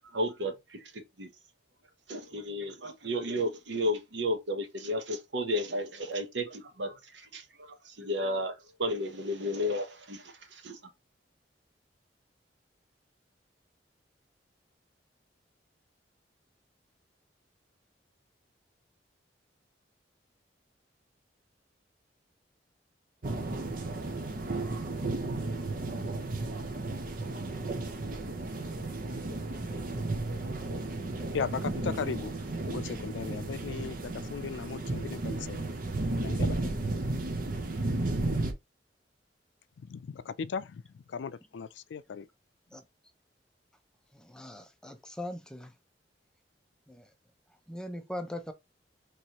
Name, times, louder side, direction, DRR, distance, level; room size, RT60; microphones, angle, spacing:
voice 1, 0.1-1.3 2.1-10.8, equal, 85° right, 1.0 m, -33 dB
sound 1, 23.2-38.5, right 2 dB, 50° right, 0.8 m, -33 dB
voice 2, 31.3-32.4 32.7-35.8 36.2-36.8 39.8-42.3, left 6 dB, 90° left, 0.4 m, -37 dB
voice 3, 44.1-45.7 46.9-47.1 47.7-48.5, left 1 dB, 5° left, 0.6 m, -40 dB
4.5 x 3.2 x 2.9 m
head